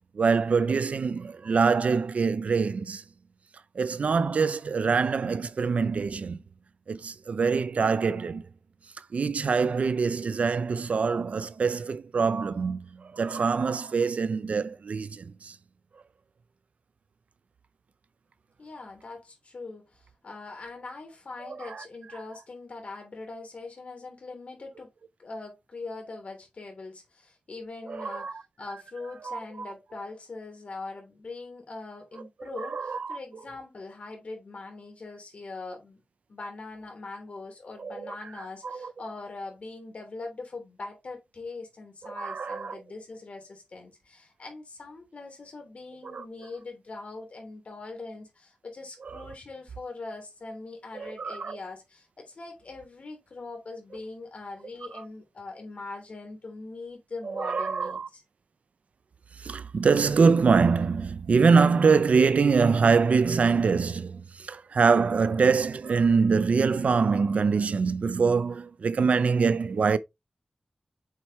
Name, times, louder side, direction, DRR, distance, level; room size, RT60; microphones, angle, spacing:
voice 1, 0.1-3.0 3.7-6.4 6.9-8.4 9.0-15.6 21.5-21.9 27.9-28.4 29.2-29.7 32.5-33.2 37.8-38.9 42.0-42.8 46.0-46.3 49.0-49.2 50.9-51.6 57.2-58.1 59.3-70.0, right 5 dB, 80° right, 0.5 m, -24 dB
voice 2, 18.6-24.9 25.2-28.3 28.6-36.0 36.3-58.2, left 3 dB, 70° left, 3.3 m, -42 dB
7.4 x 4.6 x 3.1 m
wide cardioid pair, 75°, 2 cm